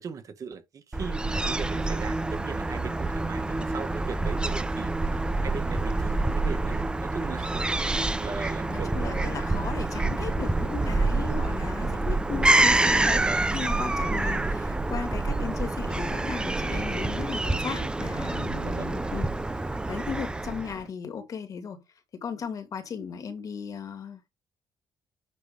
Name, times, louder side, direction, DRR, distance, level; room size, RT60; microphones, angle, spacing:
voice 1, 0.0-9.3 13.1-13.6 18.6-18.9, right 6 dB, 50° right, 1.8 m, -39 dB
Fowl / Gull seagull, 0.9-20.8, right 2 dB, 10° right, 0.8 m, -27 dB
voice 2, 8.7-13.3 13.5-19.4 19.9-21.8 22.2-24.3, left 6 dB, 50° left, 2.3 m, -36 dB
9.5 x 3.3 x 5.3 m
cardioid pair, 105°, 7 cm